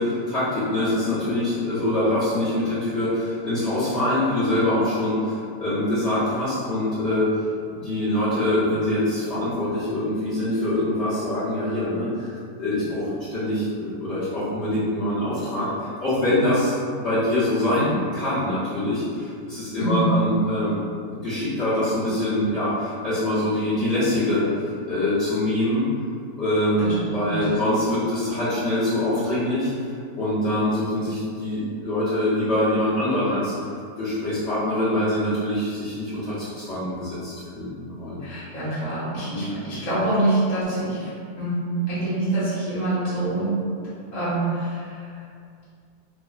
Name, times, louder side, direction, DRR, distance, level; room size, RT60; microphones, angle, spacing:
voice 1, 0.0-7.3 7.7-12.3 12.6-20.8 21.1-24.4 24.9-25.9 26.4-29.7 30.2-33.5 34.0-38.2 39.3-39.5, left 1 dB, 45° left, -15 dB, 1.2 m, -24 dB
voice 2, 19.8-20.1 26.8-27.3 38.2-43.5 44.1-45.1, right 1 dB, 25° left, -13 dB, 1.0 m, -26 dB
3.1 x 2.4 x 2.4 m, 2.2 s
omnidirectional pair, 1.8 m